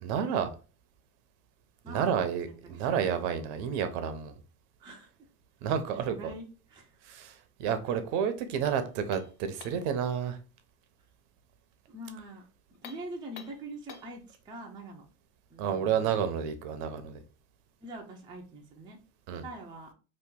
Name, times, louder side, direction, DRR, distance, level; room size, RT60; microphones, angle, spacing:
voice 1, 0.0-0.5 1.9-4.3 5.6-6.1 7.0-10.4 15.6-17.2 19.3-19.5, right 8 dB, 50° right, 0.7 m, -30 dB
voice 2, 1.8-2.6 4.8-5.1 5.9-6.9 11.9-12.4 12.7-15.1 15.5-16.5 17.8-19.0 19.4-19.9, right 1 dB, 10° right, 0.4 m, -44 dB
sound 1, 8.6-9.9 12.7-14.2, left 8 dB, 50° left, 0.6 m, -50 dB
3.0 x 2.5 x 3.6 m
hypercardioid pair, 110°, 46 cm